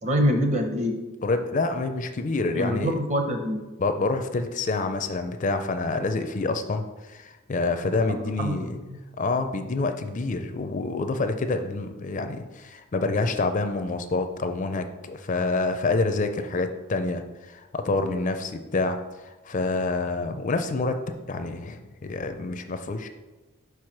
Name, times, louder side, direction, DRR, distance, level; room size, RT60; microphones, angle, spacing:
voice 1, 0.0-0.9 2.5-3.6 8.1-9.0, equal, 35° right, 4 dB, 0.8 m, -25 dB
voice 2, 1.2-2.9 3.8-8.8 9.2-19.0 19.2-21.0 21.3-23.1, left 3 dB, 35° left, 8 dB, 0.4 m, -27 dB
4.7 x 4.6 x 5.8 m, 1.1 s
head